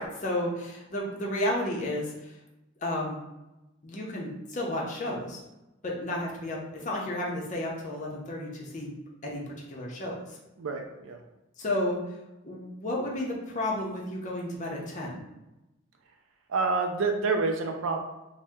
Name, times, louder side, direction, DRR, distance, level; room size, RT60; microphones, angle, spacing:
voice 1, 0.2-2.1 2.8-3.2 3.8-5.4 5.8-8.9 9.2-10.2 11.6-12.0 12.4-15.2, left 1 dB, 35° left, -2 dB, 0.6 m, -32 dB
voice 2, 10.6-11.2 16.5-18.0, right 4 dB, 65° right, 4 dB, 0.4 m, -28 dB
2.7 x 2.1 x 3.4 m, 0.98 s
head